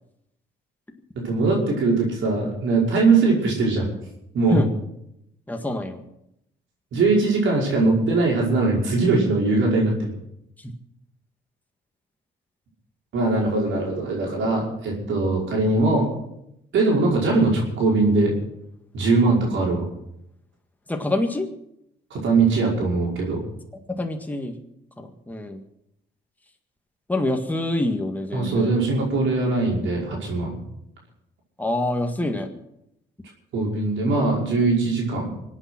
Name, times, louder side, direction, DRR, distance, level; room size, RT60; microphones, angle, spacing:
voice 1, 1.2-3.9 4.3-4.6 6.9-10.1 13.1-16.1 16.7-18.3 18.9-19.9 22.1-23.4 28.3-30.6 33.5-35.4, right 3 dB, 75° right, -2 dB, 5.4 m, -21 dB
voice 2, 5.5-6.0 10.6-10.7 20.9-21.5 23.9-24.6 25.0-25.6 27.1-28.7 31.6-32.5, left 1 dB, 10° left, 3 dB, 1.8 m, -26 dB
23.5 x 8.9 x 5.9 m, 0.81 s
cardioid pair, 90°, 20 cm